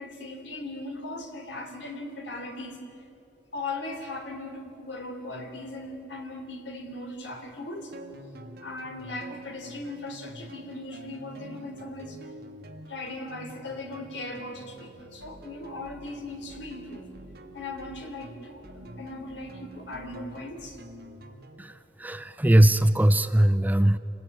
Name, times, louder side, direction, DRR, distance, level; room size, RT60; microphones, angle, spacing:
voice 1, 0.0-2.8 3.5-7.9 8.6-12.2 12.9-17.1 17.5-20.8, left 2 dB, 70° left, 4 dB, 3.5 m, -38 dB
sound 1, 7.9-21.6, right 1 dB, 55° right, 2.2 m, -47 dB
voice 2, 22.0-24.0, right 1 dB, 10° right, 12 dB, 0.5 m, -20 dB
27.5 x 20.0 x 9.8 m, 3.0 s
head